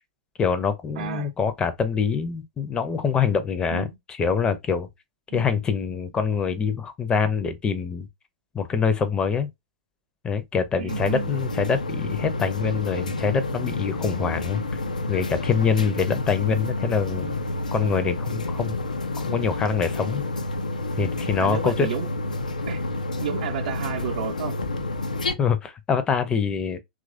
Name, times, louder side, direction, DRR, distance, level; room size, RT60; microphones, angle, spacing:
voice 1, 0.4-4.9 5.3-8.1 8.5-9.5 10.2-14.8 15.1-17.4 17.7-18.8 19.3-20.2 21.0-21.9 25.4-26.8, left 6 dB, 20° left, 0.6 m, -25 dB
voice 2, 1.0-1.3 3.7-4.0 5.3-5.5 10.8-11.3 21.4-22.1 22.7-22.8 23.2-24.6, right 8 dB, 60° right, 0.6 m, -31 dB
sound 1, 10.9-25.3, left 2 dB, 80° left, 0.5 m, -29 dB
2.9 x 2.5 x 2.6 m
figure-of-eight pair, 105°, 4 cm